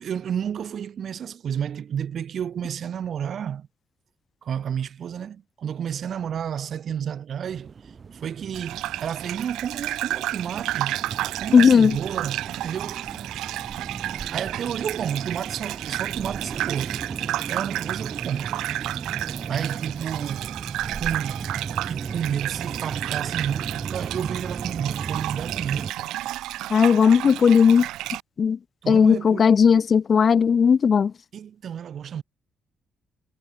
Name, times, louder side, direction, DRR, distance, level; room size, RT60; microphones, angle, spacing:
voice 1, 0.0-3.7 4.4-7.7 8.1-11.0 11.4-13.0 14.3-16.9 17.5-18.5 19.5-20.5 20.9-25.9 28.8-29.5 31.3-32.2, right 8 dB, 60° right, 2.2 m, -31 dB
sound 1, 7.4-25.9, right 5 dB, 40° right, 1.2 m, -36 dB
Gurgling / Bathtub (filling or washing), 8.5-28.2, right 15 dB, 90° right, 1.0 m, -32 dB
voice 2, 11.5-12.0 26.7-27.9 28.4-28.6 28.9-31.1, left 6 dB, 45° left, 0.5 m, -16 dB
cardioid pair, 90°, 0 cm